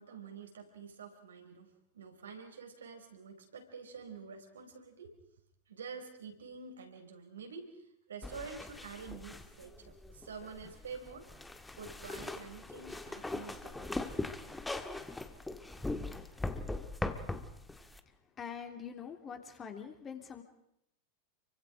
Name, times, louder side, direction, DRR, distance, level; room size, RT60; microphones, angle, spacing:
voice 1, 0.0-1.7 1.9-5.1 5.7-11.3 11.8-14.0, right 5 dB, 70° right, 4 dB, 4.7 m, -48 dB
sound 1, 8.2-18.0, left 2 dB, 5° left, 1.7 m, -40 dB
voice 2, 18.0-20.4, left 7 dB, 25° left, 5 dB, 3.2 m, -45 dB
30.0 x 24.5 x 5.1 m, 0.75 s
figure-of-eight pair, 90°, 0 cm